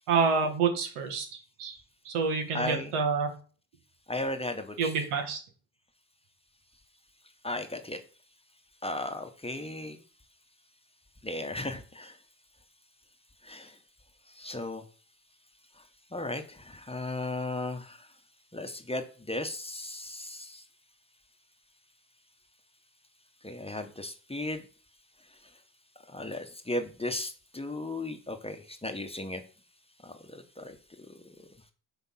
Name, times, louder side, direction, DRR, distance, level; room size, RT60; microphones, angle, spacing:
voice 1, 0.1-1.8 2.0-3.3 4.8-5.4, right 5 dB, 85° right, 4 dB, 1.6 m, -28 dB
voice 2, 2.5-2.9 4.1-4.9 7.4-8.0 8.8-10.0 11.2-12.2 13.4-13.7 14.3-14.8 16.1-18.1 18.5-20.6 23.4-24.6 26.1-29.4 30.0-31.1, left 1 dB, 10° left, 6 dB, 1.0 m, -36 dB
5.8 x 3.6 x 5.7 m, 0.39 s
supercardioid pair, 65°, 50 cm